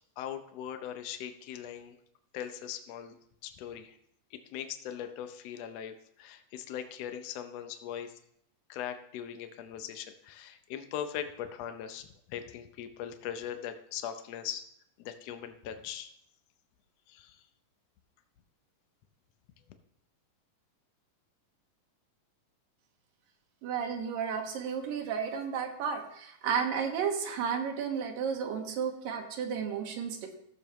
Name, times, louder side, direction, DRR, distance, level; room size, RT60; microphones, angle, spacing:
voice 1, 0.2-2.0 2.3-3.1 3.4-4.0 4.3-8.1 8.7-14.6 15.0-16.1 17.1-17.4, left 9 dB, 85° left, 8 dB, 1.4 m, -40 dB
voice 2, 23.6-30.3, right 7 dB, 90° right, 3 dB, 2.9 m, -33 dB
15.5 x 7.0 x 3.0 m, 0.72 s
omnidirectional pair, 3.9 m